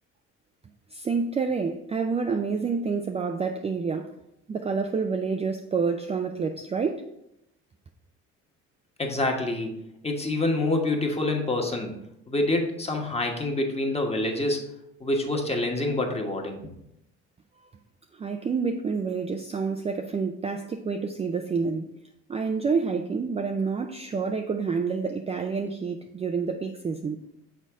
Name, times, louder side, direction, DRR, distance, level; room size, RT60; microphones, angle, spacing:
voice 1, 0.9-4.1 4.5-7.1 18.2-22.0 22.3-27.2, right 5 dB, 20° right, 0.4 m, -28 dB
voice 2, 9.0-9.7 10.0-11.9 12.3-14.7 15.0-16.6, left 2 dB, 20° left, 1.3 m, -26 dB
6.5 x 4.0 x 3.6 m
supercardioid pair, 80°, 32 cm